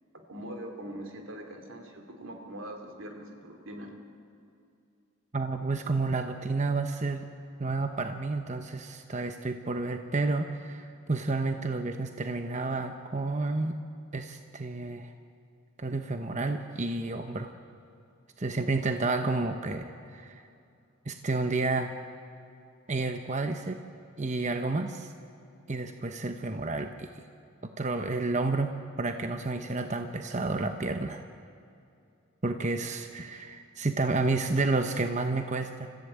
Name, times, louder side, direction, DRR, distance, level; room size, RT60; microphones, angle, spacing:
voice 1, 0.1-3.9, right 1 dB, 70° right, 4 dB, 2.9 m, -42 dB
voice 2, 5.3-7.2 7.6-13.7 14.1-15.1 15.8-17.5 18.4-20.4 21.1-21.9 22.9-23.8 24.2-25.1 25.7-27.2 27.8-31.2 32.4-35.9, right 3 dB, 35° right, 6 dB, 0.9 m, -30 dB
29.5 x 14.5 x 8.8 m, 2.5 s
head